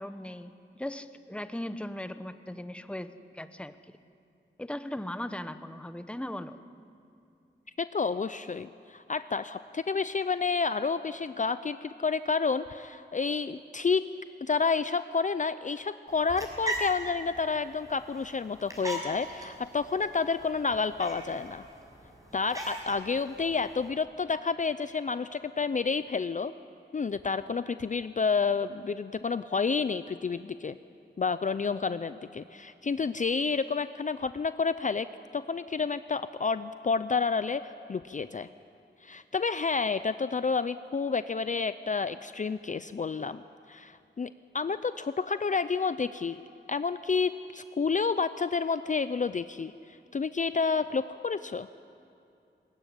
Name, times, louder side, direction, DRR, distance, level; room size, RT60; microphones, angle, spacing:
voice 1, 0.0-3.7 4.6-6.6, left 1 dB, 5° left, 11 dB, 0.9 m, -38 dB
voice 2, 7.8-14.1 14.4-21.7 22.3-26.5 26.9-30.8 31.2-38.5 39.0-43.4 43.7-46.4 46.7-49.7 50.1-51.7, left 5 dB, 40° left, 13 dB, 0.5 m, -30 dB
sound 1, 16.1-23.9, right 1 dB, 15° right, 5.7 m, -40 dB
21.0 x 19.5 x 9.7 m, 2.6 s
wide cardioid pair, 100°, 19 cm